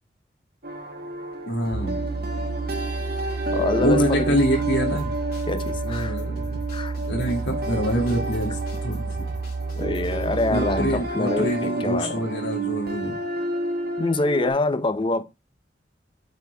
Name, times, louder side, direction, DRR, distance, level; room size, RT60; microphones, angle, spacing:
sound 1, 0.6-14.5, right 2 dB, 60° right, 1.3 m, -30 dB
voice 1, 1.5-2.0 3.8-5.2 5.8-6.6 7.1-9.1 10.5-13.2, equal, 75° left, 2.5 m, -25 dB
sound 2, 1.7-11.0, right 4 dB, 80° right, 0.7 m, -31 dB
voice 2, 3.5-4.4 5.5-6.2 6.7-6.9 9.8-12.2 14.0-15.2, left 2 dB, 30° left, 0.6 m, -25 dB
sound 3, 5.0-10.5, left 1 dB, 55° left, 3.5 m, -44 dB
8.1 x 4.6 x 3.5 m
head